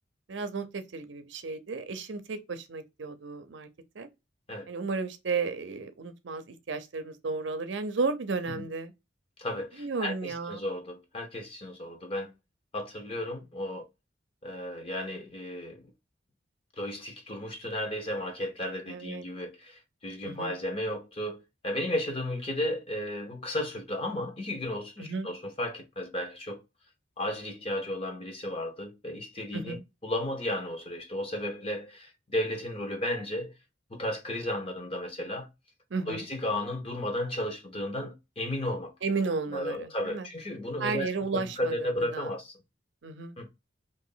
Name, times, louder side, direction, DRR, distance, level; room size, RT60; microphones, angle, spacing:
voice 1, 0.3-3.7 4.0-4.1 4.7-8.9 9.8-10.6 18.9-19.2 20.2-20.5 25.0-25.3 29.5-29.8 35.9-36.3 39.0-40.3 40.8-42.3 43.0-43.3, right 4 dB, 75° right, 0.6 m, -33 dB
voice 2, 9.4-12.3 12.7-13.8 14.4-15.9 16.8-26.6 27.2-29.8 30.0-33.5 33.9-35.5 36.1-38.9 39.5-42.5 43.4-43.5, left 1 dB, 30° left, 0.8 m, -34 dB
3.0 x 2.5 x 3.9 m
head